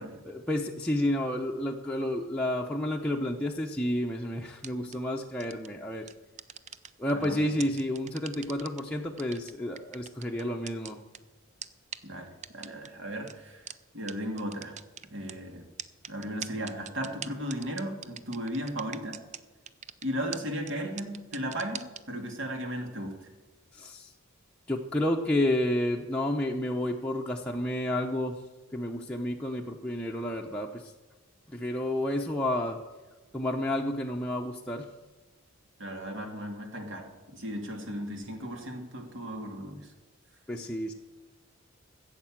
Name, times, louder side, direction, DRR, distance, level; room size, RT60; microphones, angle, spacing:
voice 1, 0.2-6.1 7.0-11.0 23.7-24.1 24.7-28.4 28.7-30.8 31.5-32.8 33.3-34.9 40.5-40.9, left 1 dB, 5° left, -2 dB, 0.8 m, -30 dB
sound 1, 4.6-5.0 5.4-5.7 6.1-7.3 7.6-8.8 9.2-11.2 11.6-11.7 11.9-12.0 12.4-12.9 13.3-13.4 13.7-13.8 14.1-14.2 14.4-15.3 15.8-19.4 19.7-20.0 20.3-20.4 20.7-20.8 21.0-22.0, right 9 dB, 35° right, 0.5 m, -40 dB
voice 2, 7.1-7.5 12.0-13.7 13.9-14.8 15.1-15.6 16.1-19.2 20.0-23.3 35.8-39.9, equal, 65° right, 3 dB, 2.3 m, -36 dB
15.5 x 8.0 x 7.4 m, 1.2 s
head